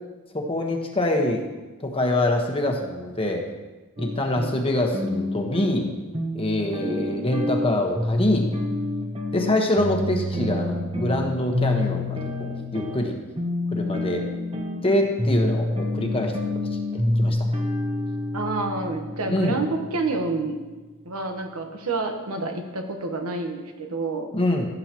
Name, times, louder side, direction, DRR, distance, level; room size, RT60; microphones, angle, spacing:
voice 1, 0.3-1.4 1.8-3.5 4.0-5.9 6.3-8.5 9.3-13.2 13.7-14.2 14.8-16.3 16.7-17.4 19.3-19.6 24.3-24.7, left 1 dB, 25° left, 2 dB, 1.2 m, -25 dB
sound 1, 4.0-20.2, left 1 dB, 25° right, 1.0 m, -28 dB
voice 2, 18.3-20.6 21.0-24.3, right 3 dB, 70° right, 4 dB, 1.2 m, -28 dB
16.0 x 7.7 x 3.0 m, 1.2 s
head